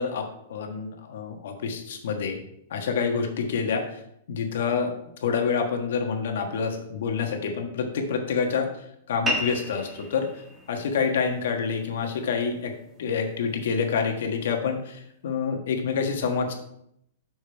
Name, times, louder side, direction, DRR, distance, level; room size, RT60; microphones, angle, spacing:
voice 1, 0.0-2.4 2.7-4.0 4.3-4.9 5.2-10.3 10.7-12.7 13.0-16.5, left 5 dB, 70° left, 4 dB, 1.3 m, -27 dB
sound 1, 9.3-14.3, right 1 dB, 10° right, 1.2 m, -36 dB
6.1 x 5.2 x 4.5 m, 0.75 s
hypercardioid pair, 145°, 0 cm